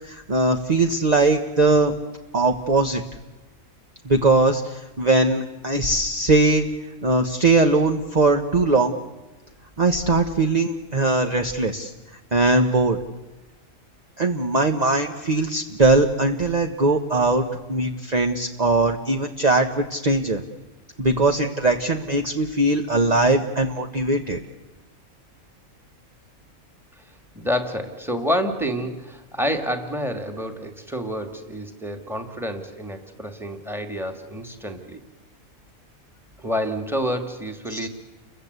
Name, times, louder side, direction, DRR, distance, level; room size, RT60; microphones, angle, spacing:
voice 1, 0.0-1.9 2.3-3.0 4.0-6.7 7.0-9.0 9.8-11.9 12.3-13.0 14.2-20.4 21.0-24.4 37.7-37.8, right 2 dB, 30° right, 4 dB, 1.2 m, -20 dB
voice 2, 27.3-35.0 36.4-37.9, equal, ahead, 6 dB, 2.3 m, -28 dB
30.0 x 22.5 x 8.2 m, 1.1 s
omnidirectional pair, 1.5 m